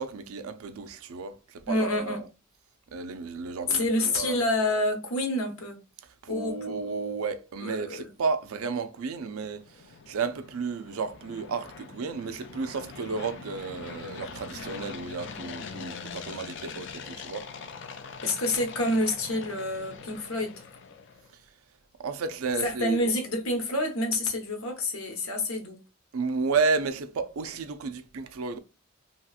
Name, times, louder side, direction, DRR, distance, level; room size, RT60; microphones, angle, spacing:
voice 1, 0.0-2.3 2.9-4.4 6.2-17.5 22.0-23.1 26.1-28.6, right 4 dB, 85° right, 0.5 m, -32 dB
voice 2, 1.7-2.2 3.7-5.8 6.3-6.8 7.6-8.1 18.2-20.5 22.6-25.8, left 1 dB, 85° left, 1.0 m, -28 dB
sound 1, 9.0-21.3, left 5 dB, 60° left, 0.5 m, -43 dB
2.9 x 2.8 x 2.4 m
head